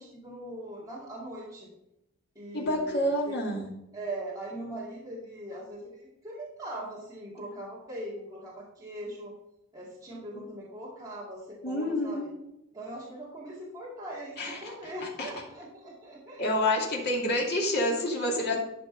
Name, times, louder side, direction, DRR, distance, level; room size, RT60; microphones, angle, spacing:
voice 1, 0.0-1.7 2.4-3.4 3.9-9.3 9.7-12.3 12.7-16.5, right 1 dB, 15° right, -6 dB, 2.3 m, -40 dB
voice 2, 2.5-3.7 11.6-12.3 14.4-15.3 16.4-18.6, left 1 dB, 50° left, -1 dB, 2.5 m, -28 dB
12.0 x 5.2 x 5.3 m, 0.85 s
head